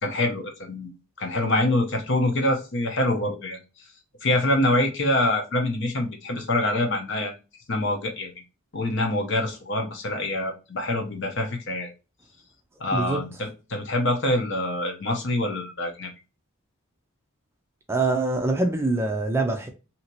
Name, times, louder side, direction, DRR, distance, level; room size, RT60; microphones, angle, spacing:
voice 1, 0.0-3.6 4.2-7.3 7.7-8.3 8.7-11.9 12.8-16.1, left 1 dB, 55° left, 0.9 m, -25 dB
voice 2, 12.9-13.2 17.9-19.7, right 2 dB, 10° right, 0.4 m, -24 dB
2.8 x 2.8 x 2.8 m
head